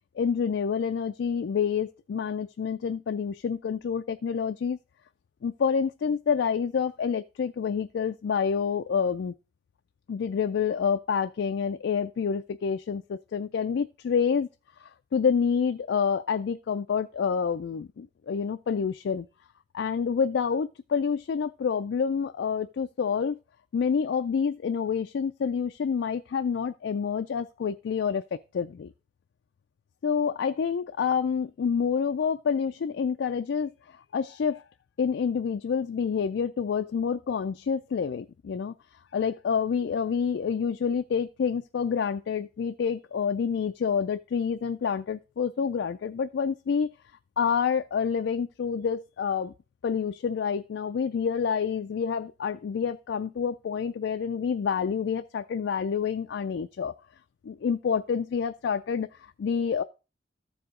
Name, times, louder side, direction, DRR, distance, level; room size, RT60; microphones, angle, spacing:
voice 1, 0.2-4.8 5.4-9.3 10.1-14.5 14.8-19.3 19.7-23.4 23.7-28.9 30.0-34.6 35.0-38.7 39.1-46.9 47.4-49.5 49.8-56.9 57.4-59.8, left 6 dB, 65° left, 0.3 m, -28 dB
14.0 x 4.8 x 3.7 m
head